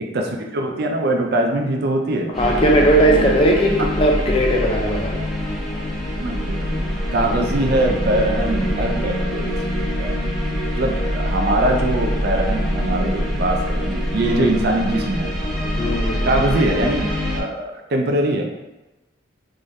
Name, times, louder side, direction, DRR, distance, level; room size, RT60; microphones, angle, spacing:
voice 1, 0.1-2.4 3.1-3.3 6.2-6.8 7.1-10.2 10.7-15.3 16.2-18.5, right 1 dB, 55° right, 2 dB, 0.5 m, -22 dB
sound 1, 2.3-17.4, equal, ahead, 0.8 m, -24 dB
voice 2, 2.4-5.3 14.2-14.5 15.8-16.3, right 1 dB, 30° left, 0 dB, 0.5 m, -18 dB
3.7 x 3.2 x 2.6 m, 1.0 s
head